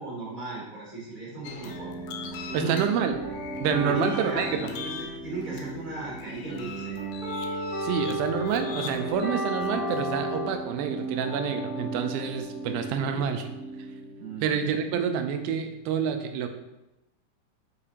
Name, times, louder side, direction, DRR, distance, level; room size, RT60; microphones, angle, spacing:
voice 1, 0.0-1.9 2.5-2.9 3.8-4.9 5.2-7.0 12.8-13.3 14.2-14.7, right 3 dB, 20° left, -7 dB, 1.3 m, -36 dB
sound 1, 1.4-10.4, left 6 dB, 80° left, 2.0 m, -43 dB
sound 2, 1.6-14.3, right 1 dB, 25° right, 1.2 m, -34 dB
voice 2, 2.5-3.2 3.6-4.5 7.8-13.5 14.4-16.5, right 7 dB, 90° right, 7 dB, 2.4 m, -28 dB
6.6 x 5.0 x 2.8 m, 0.95 s
omnidirectional pair, 4.1 m